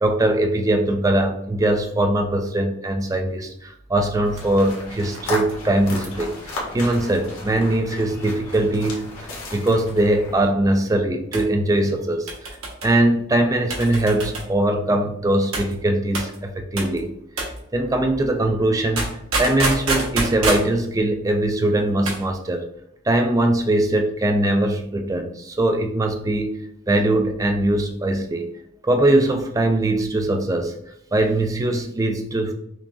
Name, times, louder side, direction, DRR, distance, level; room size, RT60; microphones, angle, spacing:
voice 1, 0.0-12.5 12.8-17.1 17.4-22.6 23.1-26.6 26.9-28.5 28.8-30.7 31.1-32.5, right 1 dB, 15° right, 5 dB, 0.3 m, -21 dB
sound 1, 4.2-10.5, left 2 dB, 80° left, 1.1 m, -34 dB
sound 2, 4.3-7.7 8.5-9.0 9.2-9.3 9.8-10.2 11.3-11.5 12.3-12.9 13.7-14.5 15.5-15.7 16.1-16.4 16.8-17.0 17.4-17.6 19.0-20.7 21.9-22.2 22.5-22.6, right 2 dB, 75° right, 1.1 m, -28 dB
5.6 x 2.3 x 2.6 m, 0.73 s
head